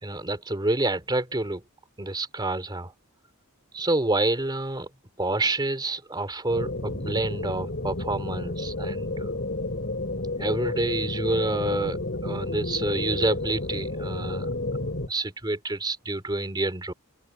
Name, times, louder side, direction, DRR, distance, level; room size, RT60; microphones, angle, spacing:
voice 1, 0.0-1.6 2.0-2.9 3.7-4.9 5.2-9.4 10.4-14.5 15.1-16.9, right 2 dB, 20° right, 2.7 m, -28 dB
sound 1, 6.5-15.1, left 2 dB, 50° left, 4.1 m, -31 dB
open air
head